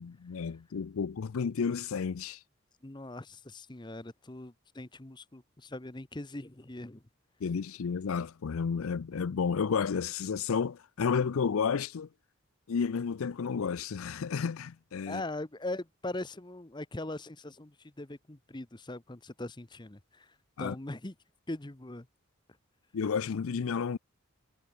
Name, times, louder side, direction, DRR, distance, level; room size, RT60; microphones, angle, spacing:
voice 1, 0.0-2.4 7.4-12.1 12.7-15.2 20.6-20.7 22.9-24.0, left 6 dB, 75° left, 0.5 m, -31 dB
voice 2, 2.8-7.0 15.1-21.1 21.5-22.1, left 2 dB, 20° left, 0.9 m, -41 dB
head